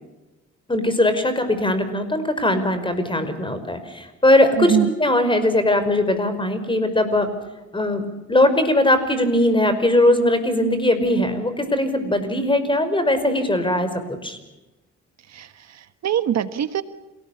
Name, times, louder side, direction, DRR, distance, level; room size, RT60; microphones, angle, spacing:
voice 1, 0.7-7.3 7.7-8.0 8.3-14.4, left 1 dB, 15° left, 10 dB, 5.3 m, -20 dB
voice 2, 4.6-4.9 15.3-16.8, right 10 dB, 60° right, 12 dB, 1.3 m, -23 dB
28.0 x 19.0 x 8.4 m, 1.1 s
cardioid pair, 90°, 30 cm